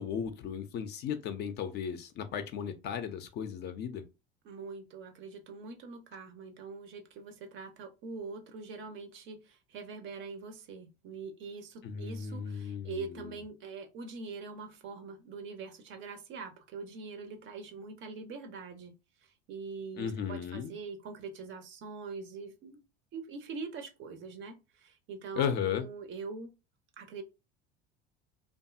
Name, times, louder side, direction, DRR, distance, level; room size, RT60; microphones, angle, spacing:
voice 1, 0.0-4.0 11.8-13.4 19.9-20.7 25.3-25.9, left 7 dB, 35° left, 0.4 m, -35 dB
voice 2, 4.4-18.9 19.5-22.8 23.1-26.5 27.0-27.2, right 4 dB, 40° right, 0.5 m, -43 dB
2.6 x 2.3 x 2.3 m
figure-of-eight pair, 70°, 32 cm